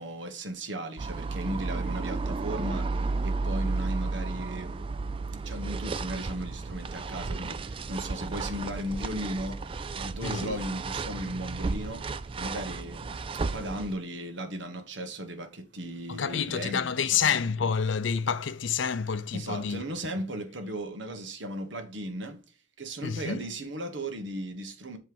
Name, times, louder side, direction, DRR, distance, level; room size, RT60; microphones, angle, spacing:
voice 1, 0.0-4.8 5.4-17.2 19.3-22.4 22.8-25.0, right 1 dB, 70° right, 1.3 m, -36 dB
sound 1, 1.0-13.9, right 3 dB, 25° right, 0.3 m, -33 dB
voice 2, 10.2-10.6 16.1-19.8 23.0-23.5, left 6 dB, 75° left, 0.6 m, -28 dB
7.8 x 3.3 x 5.3 m
head